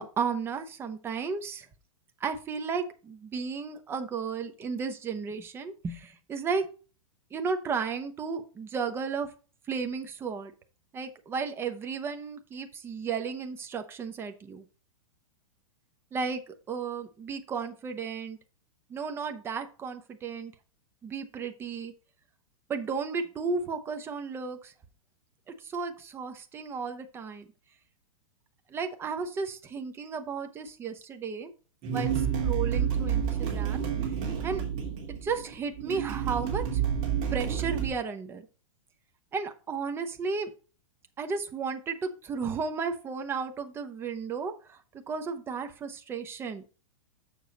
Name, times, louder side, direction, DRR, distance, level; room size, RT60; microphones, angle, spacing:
voice 1, 0.0-1.6 2.2-6.7 7.3-9.3 9.7-10.5 10.9-14.6 16.1-18.4 18.9-20.5 21.0-21.9 22.7-24.7 25.6-27.4 28.7-31.5 31.9-32.1 32.4-33.8 34.4-34.6 35.2-36.8 37.3-38.4 39.3-40.5 41.2-44.8 45.1-46.6, right 5 dB, 15° right, 7 dB, 0.8 m, -34 dB
sound 1, 31.8-37.9, right 8 dB, 35° right, 2.9 m, -29 dB
7.0 x 6.3 x 4.0 m, 0.36 s
supercardioid pair, 160°, 18 cm